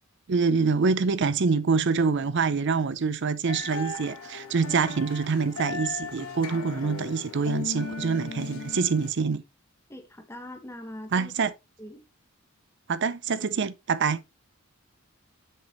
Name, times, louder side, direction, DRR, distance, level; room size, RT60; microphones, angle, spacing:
voice 1, 0.3-9.4 11.1-11.5 12.9-14.2, right 5 dB, 55° right, 0.5 m, -25 dB
sound 1, 3.5-9.1, left 4 dB, 85° left, 1.7 m, -37 dB
voice 2, 9.9-11.3 11.8-12.0, left 1 dB, 10° left, 1.3 m, -42 dB
7.6 x 6.3 x 3.0 m
head